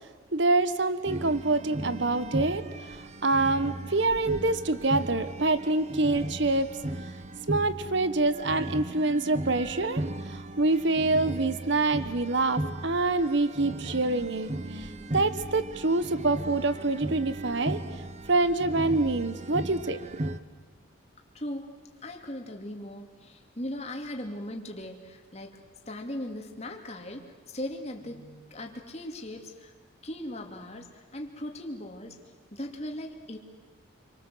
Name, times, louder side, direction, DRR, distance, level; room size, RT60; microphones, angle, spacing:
voice 1, 0.3-6.7 7.5-17.8 18.3-20.2, right 2 dB, 60° right, 13 dB, 1.1 m, -26 dB
sound 1, 1.0-20.4, right 1 dB, 35° right, 1.0 m, -36 dB
voice 2, 21.3-21.7 22.0-25.6 25.9-29.7 30.0-32.2 32.5-33.4, left 1 dB, 30° left, 3 dB, 2.7 m, -38 dB
29.5 x 24.5 x 7.8 m, 1.3 s
head